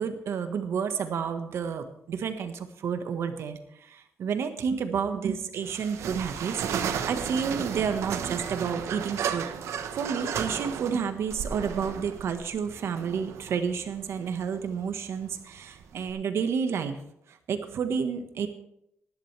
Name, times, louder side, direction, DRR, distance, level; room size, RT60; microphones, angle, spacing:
voice 1, 0.0-17.0 17.3-18.5, right 6 dB, 65° right, 7 dB, 1.5 m, -30 dB
sound 1, 5.6-16.1, right 7 dB, 85° right, 1.2 m, -34 dB
19.5 x 11.5 x 3.4 m, 0.79 s
wide cardioid pair, 145°, 5 cm